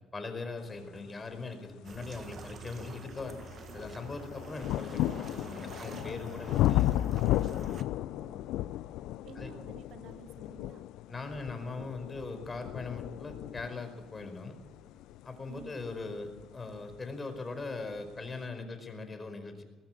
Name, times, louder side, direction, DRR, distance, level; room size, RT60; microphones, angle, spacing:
voice 1, 0.1-3.4 3.7-7.0 9.3-9.5 11.1-14.5 15.2-19.6, left 3 dB, 25° left, 7 dB, 4.9 m, -40 dB
sound 1, 1.7-1.8 2.4-17.1 18.0-18.1, left 14 dB, 75° left, 0.5 m, -34 dB
sound 2, 1.8-7.8, right 5 dB, 50° right, 1.6 m, -47 dB
voice 2, 8.2-8.5 9.2-10.8 15.5-15.7, right 8 dB, 65° right, 12 dB, 1.2 m, -52 dB
20.0 x 14.5 x 8.7 m, 1.2 s
supercardioid pair, 75°, 0 cm